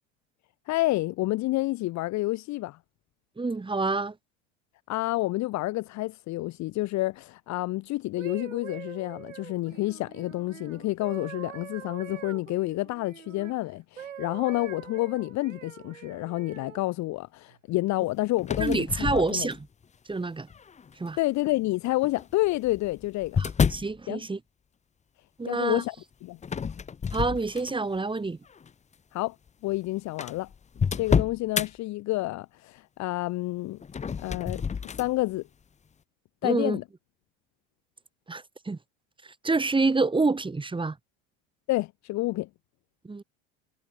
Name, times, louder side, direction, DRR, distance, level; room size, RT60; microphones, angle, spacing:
voice 1, 0.7-2.8 4.9-19.5 21.2-23.4 24.1-24.2 25.5-25.9 26.2-26.4 29.1-29.4 29.6-30.5 30.9-33.8 34.2-35.4 36.4-36.8 41.7-42.5, left 19 dB, 50° left, 0.9 m, -29 dB
voice 2, 3.4-4.1 18.6-19.7 20.1-20.5 21.0-21.2 23.4-24.4 25.4-25.8 27.1-28.4 36.4-36.8 38.3-38.8 39.4-41.0 43.0-43.2, right 3 dB, 15° right, 1.6 m, -27 dB
sound 1, 8.0-13.5 14.0-16.8 17.5-17.8, right 9 dB, 90° right, 1.6 m, -44 dB
sound 2, 18.4-19.8 20.5-20.9 22.0-24.0 26.4-28.0 28.5-28.7 29.5-29.6 29.7-29.8 30.2-31.7 33.8-35.1, left 6 dB, 20° left, 0.8 m, -29 dB
hypercardioid pair, 70°, 37 cm